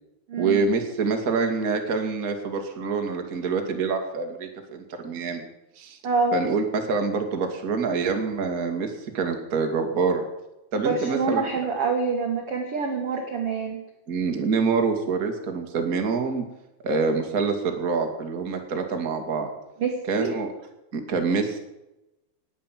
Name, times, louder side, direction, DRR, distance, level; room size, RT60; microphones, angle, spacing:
voice 1, 0.4-5.5 5.8-6.0 6.3-10.3 10.7-11.4 14.1-16.4 16.8-19.5 20.1-20.5 20.9-21.6, right 4 dB, 35° right, 3 dB, 1.4 m, -26 dB
voice 2, 10.7-13.8 19.8-20.3, right 4 dB, 60° right, 2 dB, 1.5 m, -26 dB
19.5 x 8.2 x 7.5 m, 0.93 s
omnidirectional pair, 5.2 m